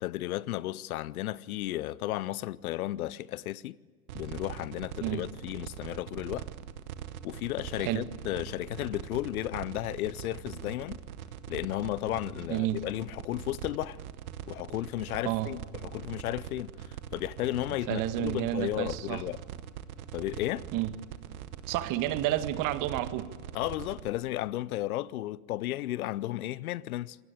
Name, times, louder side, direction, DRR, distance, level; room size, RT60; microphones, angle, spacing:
voice 1, 0.0-3.8 4.1-6.5 7.2-11.0 11.5-14.0 14.5-19.4 20.1-20.7 23.5-27.2, left 15 dB, 70° left, 0.8 m, -34 dB
sound 1, 4.1-24.1, right 10 dB, 70° right, 1.7 m, -42 dB
voice 2, 12.5-12.8 15.2-15.5 17.9-19.2 20.7-20.9 21.7-23.3, right 14 dB, 45° right, 1.7 m, -30 dB
26.5 x 19.5 x 8.8 m
hypercardioid pair, 100°, 45 cm